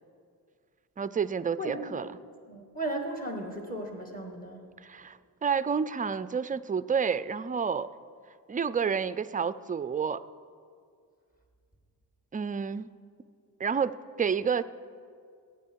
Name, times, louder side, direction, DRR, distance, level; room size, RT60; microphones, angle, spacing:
voice 1, 1.0-2.1 4.8-7.9 8.5-10.2 12.3-12.9 13.6-14.6, right 6 dB, 20° right, 15 dB, 0.4 m, -29 dB
voice 2, 1.6-1.9 2.5-4.7, right 1 dB, 20° left, 2 dB, 2.2 m, -35 dB
17.0 x 8.8 x 4.6 m, 2.2 s
cardioid pair, 65°, 41 cm